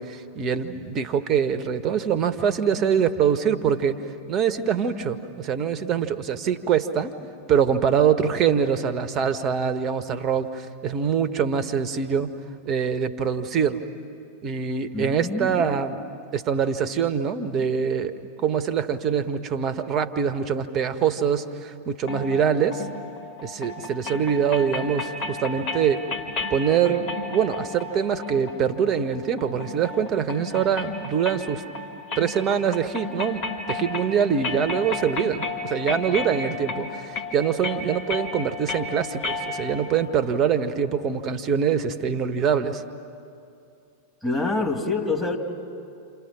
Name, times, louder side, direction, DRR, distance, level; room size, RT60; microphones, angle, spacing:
voice 1, 0.0-4.0 4.3-7.1 7.5-12.3 12.6-13.8 14.4-16.0 16.3-22.9 23.4-26.0 26.5-31.6 32.1-42.8, right 7 dB, 30° right, 11 dB, 1.3 m, -24 dB
voice 2, 14.9-15.8 44.2-45.4, left 3 dB, ahead, 4 dB, 2.6 m, -26 dB
sound 1, 22.1-39.9, left 3 dB, 45° left, 3.0 m, -33 dB
28.5 x 28.0 x 6.3 m, 2.5 s
figure-of-eight pair, 90°, 0 cm